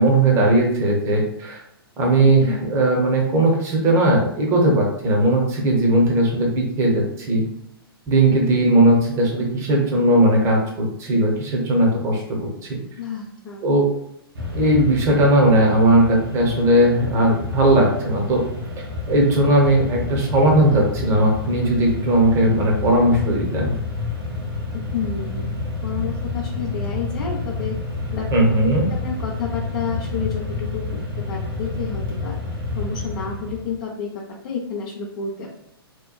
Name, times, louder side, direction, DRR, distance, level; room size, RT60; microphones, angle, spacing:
voice 1, 0.0-1.6 2.0-7.4 8.1-12.8 13.6-13.9 14.5-18.4 19.1-23.8 28.3-28.9, right 1 dB, 25° right, -1 dB, 0.7 m, -18 dB
voice 2, 13.0-13.6 24.9-25.5 25.8-27.7 28.1-28.3 29.0-31.0 31.3-32.4 32.8-34.1 34.4-35.5, left 6 dB, 50° left, -3 dB, 0.5 m, -30 dB
Mechanisms, 14.3-33.8, left 3 dB, 70° right, 1.2 m, -29 dB
2.9 x 2.1 x 2.2 m, 0.75 s
figure-of-eight pair, 115°, 13 cm